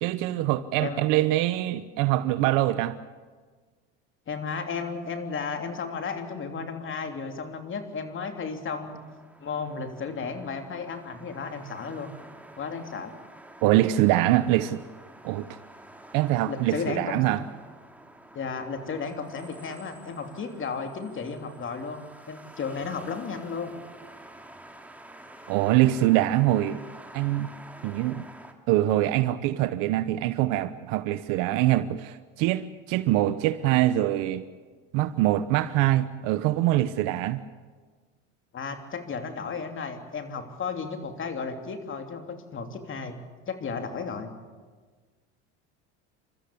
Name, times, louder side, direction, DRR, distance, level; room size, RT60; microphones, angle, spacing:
voice 1, 0.0-3.0 13.6-14.8 15.2-15.5 16.1-17.4 25.5-26.8 27.1-27.5 27.8-28.2 28.7-34.4 34.9-37.4, right 15 dB, 70° right, 1.0 m, -24 dB
voice 2, 4.3-9.0 9.4-12.1 12.6-13.1 16.5-17.2 18.3-23.7 38.5-43.2 43.5-44.3, left 5 dB, 35° left, 3.1 m, -34 dB
sound 1, 8.9-28.5, right 1 dB, 5° right, 2.4 m, -49 dB
29.0 x 13.5 x 8.5 m
supercardioid pair, 100°, 33 cm